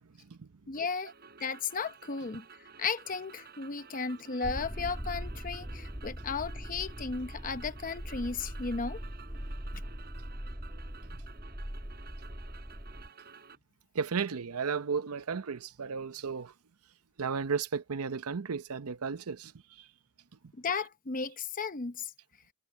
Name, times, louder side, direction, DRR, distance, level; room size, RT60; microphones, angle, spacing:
voice 1, 0.7-1.1 1.4-2.4 2.8-9.0 20.6-22.1, left 5 dB, 40° left, 0.8 m, -35 dB
sound 1, 0.7-13.6, right 6 dB, 45° right, 4.1 m, -53 dB
sound 2, 4.4-13.1, equal, 15° right, 1.8 m, -41 dB
voice 2, 13.9-16.5 17.2-19.5, right 5 dB, 85° right, 0.7 m, -34 dB
head